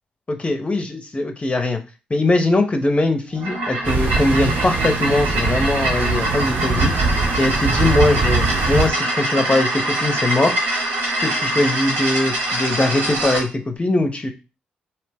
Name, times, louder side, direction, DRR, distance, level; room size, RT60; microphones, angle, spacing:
voice 1, 0.3-1.8 2.1-6.9 7.4-10.6 11.2-14.3, left 2 dB, 30° left, 6 dB, 0.6 m, -21 dB
sound 1, 3.3-13.4, right 1 dB, 85° right, 1.0 m, -24 dB
sound 2, 3.8-8.9, right 4 dB, 65° right, 0.6 m, -22 dB
2.7 x 2.0 x 3.4 m, 0.30 s
hypercardioid pair, 40°, 4 cm